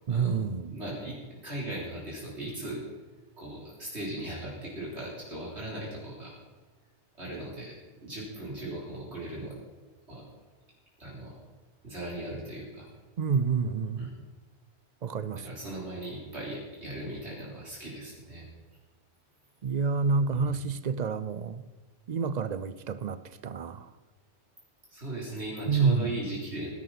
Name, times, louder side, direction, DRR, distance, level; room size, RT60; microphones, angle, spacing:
voice 1, 0.1-0.8 13.2-14.1 15.0-15.5 19.6-21.6 22.1-23.9 25.7-26.1, right 5 dB, 50° right, 0.5 m, -28 dB
voice 2, 0.7-1.2 1.4-2.8 3.4-6.4 7.2-7.8 8.0-9.6 10.1-10.2 11.0-11.4 11.8-12.9 14.0-14.1 15.3-18.4 20.3-20.5 24.9-26.7, right 1 dB, 65° right, 3.9 m, -38 dB
19.0 x 11.0 x 4.1 m
omnidirectional pair, 1.2 m